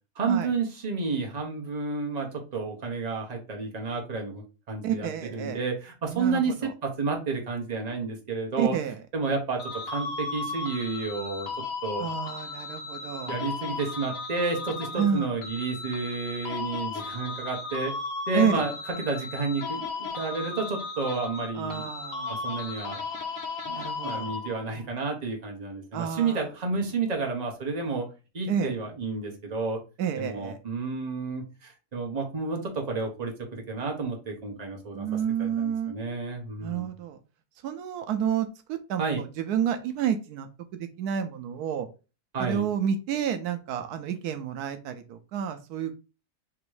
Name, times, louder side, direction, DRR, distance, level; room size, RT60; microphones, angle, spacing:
voice 1, 0.1-6.5 6.8-8.7 9.1-9.6 9.9-11.5 11.8-12.0 13.3-17.9 18.3-18.7 19.0-21.9 22.3-23.0 23.7-28.1 28.3-29.8 30.2-35.1 35.4-36.9 39.0-39.2 42.3-42.6, right 4 dB, 30° right, 2 dB, 1.0 m, -31 dB
voice 2, 4.8-5.6 6.1-6.7 8.6-9.0 12.0-13.3 15.0-15.3 18.3-18.6 21.5-22.4 23.7-24.3 25.9-26.4 28.5-28.8 30.0-30.6 34.9-35.9 36.6-37.2 37.6-41.9 42.4-45.9, right 8 dB, 80° right, 8 dB, 1.1 m, -30 dB
sound 1, 9.6-24.8, left 4 dB, 60° left, 1.3 m, -35 dB
3.6 x 3.0 x 4.7 m, 0.31 s
omnidirectional pair, 1.6 m